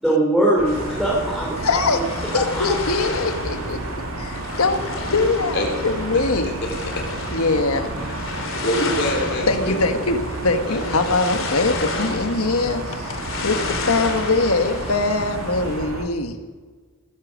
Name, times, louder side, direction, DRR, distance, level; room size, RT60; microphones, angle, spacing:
voice 1, 0.0-1.5 1.9-2.0 2.3-2.8, right 1 dB, ahead, -6 dB, 3.1 m, -21 dB
sound 1, 0.6-16.0, right 2 dB, 90° right, 2.3 m, -31 dB
sound 2, 0.7-15.8, left 3 dB, 70° left, 2.8 m, -32 dB
voice 2, 1.6-4.8 5.1-6.5 7.3-8.0 9.5-16.3, left 3 dB, 90° left, 6 dB, 1.6 m, -22 dB
voice 3, 8.0-10.0 10.5-11.0, left 1 dB, 50° left, 1 dB, 3.8 m, -26 dB
19.5 x 10.5 x 6.4 m, 1.5 s
head